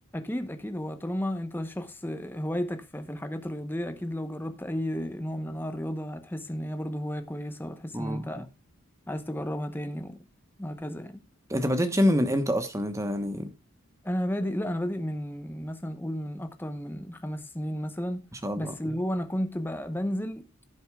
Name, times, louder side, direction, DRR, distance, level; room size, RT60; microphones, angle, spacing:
voice 1, 0.1-8.5 9.1-10.2 10.6-11.2 14.0-18.2 18.6-20.5, equal, 10° left, 0.9 m, -33 dB
voice 2, 7.9-8.5 11.5-13.5 18.4-18.7, equal, 15° right, 1.0 m, -26 dB
17.5 x 7.9 x 2.3 m
head